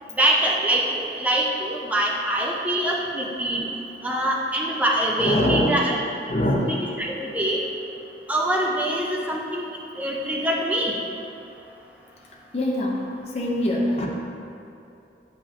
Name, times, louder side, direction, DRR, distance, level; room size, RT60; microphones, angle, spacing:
voice 1, 0.2-3.7 4.0-6.0 6.7-7.6 8.3-9.6 10.0-10.9, right 1 dB, 10° right, -2 dB, 0.6 m, -24 dB
voice 2, 5.2-5.7 6.3-6.8 12.5-14.1, left 1 dB, 35° left, -2 dB, 0.8 m, -23 dB
8.5 x 5.3 x 2.9 m, 2.8 s
head